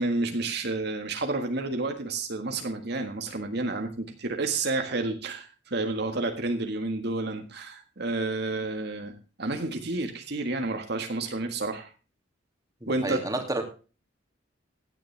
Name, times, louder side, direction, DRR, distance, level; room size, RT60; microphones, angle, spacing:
voice 1, 0.0-11.9 12.9-13.3, right 2 dB, 60° right, 5 dB, 1.8 m, -30 dB
voice 2, 12.8-13.6, right 2 dB, 20° right, 4 dB, 2.5 m, -30 dB
16.0 x 10.0 x 3.4 m, 0.34 s
head